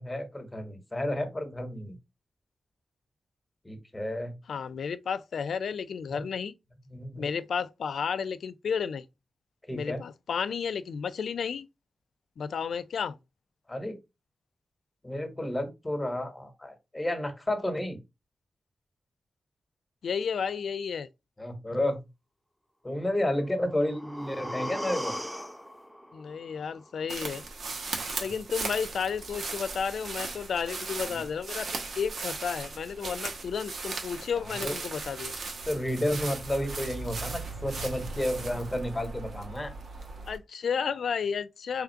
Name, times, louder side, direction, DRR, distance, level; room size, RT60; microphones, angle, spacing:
voice 1, 0.0-1.9 3.6-4.3 6.1-6.2 6.9-7.2 9.7-10.0 13.7-14.0 15.0-18.0 21.4-22.0 22.8-25.2 31.0-31.2 34.3-34.7 35.7-39.7, left 1 dB, 20° left, 1.1 m, -31 dB
voice 2, 4.5-6.5 7.2-9.0 9.7-11.7 12.4-13.2 20.0-21.1 26.1-27.4 28.2-35.3 40.3-41.8, left 6 dB, 85° left, 0.3 m, -32 dB
sound 1, 23.4-27.4 27.8-27.9, equal, ahead, 0.4 m, -39 dB
sound 2, 27.1-40.4, right 3 dB, 75° right, 1.0 m, -37 dB
3.4 x 2.4 x 4.4 m
wide cardioid pair, 90°, 0 cm